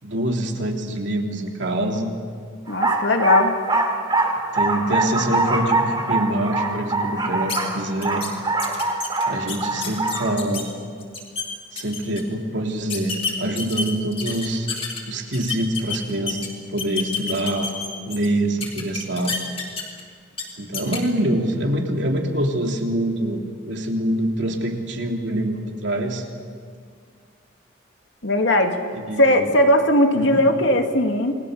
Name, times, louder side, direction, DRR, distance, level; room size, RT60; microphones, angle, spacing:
voice 1, 0.0-2.2 4.5-8.2 9.3-10.7 11.7-14.7 15.1-17.7 18.1-19.3 20.6-26.2 28.9-29.5 30.1-30.4, right 1 dB, 65° right, 1 dB, 3.0 m, -25 dB
voice 2, 2.7-3.6 28.2-28.8 29.2-31.4, left 1 dB, 65° left, 4 dB, 2.3 m, -18 dB
sound 1, 2.7-10.3, right 2 dB, 25° right, 2.7 m, -24 dB
sound 2, 7.5-7.6 8.0-8.3 8.6-10.6 11.0-11.4 11.8-12.2 12.9-15.0 15.3-16.5 16.8-18.3 18.6-20.0 20.3-20.4 20.7-21.0, left 5 dB, 30° left, 3.8 m, -29 dB
29.0 x 21.0 x 6.8 m, 2.1 s
head